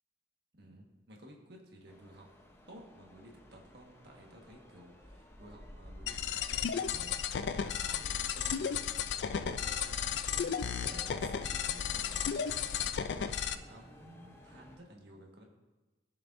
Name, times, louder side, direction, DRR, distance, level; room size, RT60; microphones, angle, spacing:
voice 1, 0.5-2.3 2.7-15.4, right 1 dB, 65° right, 0 dB, 1.5 m, -54 dB
sound 1, 1.9-14.8, left 1 dB, 15° left, 0.8 m, -55 dB
sound 2, 6.1-13.6, left 7 dB, 70° left, 0.4 m, -34 dB
15.0 x 6.7 x 2.6 m, 1.2 s
head